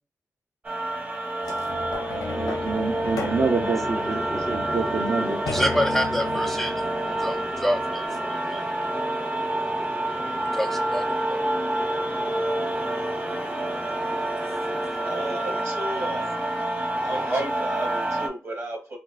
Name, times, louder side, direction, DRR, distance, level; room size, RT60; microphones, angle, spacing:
sound 1, 0.6-18.3, right 1 dB, 30° right, 0.8 m, -28 dB
sound 2, 1.4-8.2 8.8-8.9, left 3 dB, 90° left, 0.7 m, -35 dB
voice 1, 2.3-5.4, right 4 dB, 65° right, 0.5 m, -27 dB
voice 2, 3.7-15.6 16.9-17.2, equal, 5° left, 0.4 m, -32 dB
voice 3, 15.0-16.3 16.9-19.0, right 1 dB, 45° right, 1.3 m, -32 dB
4.3 x 2.1 x 2.5 m
cardioid pair, 45°, 6 cm